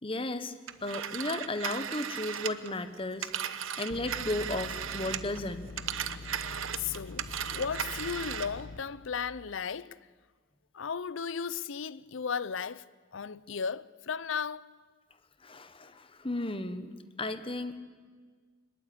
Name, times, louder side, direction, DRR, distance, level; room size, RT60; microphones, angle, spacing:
voice 1, 0.0-0.5 0.8-5.7 15.4-16.9 17.2-17.7, left 2 dB, 25° left, 1.2 m, -34 dB
Telephone, 0.7-5.4 5.7-8.6, right 8 dB, 90° right, 1.0 m, -36 dB
sound 1, 3.9-8.8, left 3 dB, 45° left, 1.8 m, -44 dB
voice 2, 6.7-7.3 7.5-10.0 10.7-12.9 13.1-14.7, left 6 dB, 75° left, 0.6 m, -35 dB
23.0 x 21.0 x 8.6 m
head